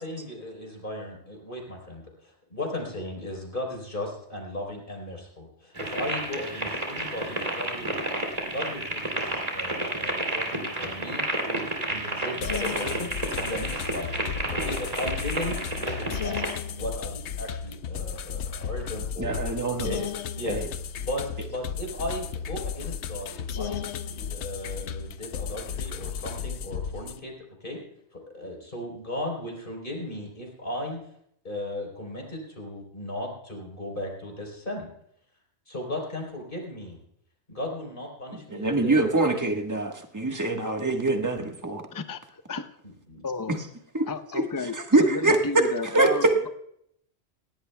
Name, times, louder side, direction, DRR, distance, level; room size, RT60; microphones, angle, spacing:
voice 1, 0.0-14.2 14.5-16.4 16.8-19.4 19.7-20.0 20.3-20.7 21.0-27.3 27.6-27.8 28.1-31.0 31.4-34.9 35.7-37.0 37.5-39.1 42.8-43.3, left 1 dB, 50° left, 1 dB, 4.0 m, -36 dB
sound 1, 5.8-16.5, right 1 dB, 35° right, 2.6 m, -31 dB
sound 2, 12.4-27.2, left 7 dB, 85° left, 1.0 m, -34 dB
voice 2, 19.2-19.9 20.5-20.6 38.5-41.8 43.9-44.1 44.9-45.7 45.9-46.5, right 2 dB, 15° right, 3 dB, 1.3 m, -24 dB
voice 3, 41.9-42.7 43.2-43.6 44.1-46.5, left 3 dB, 25° left, 9 dB, 0.5 m, -33 dB
19.5 x 17.0 x 2.2 m, 0.71 s
omnidirectional pair, 1.1 m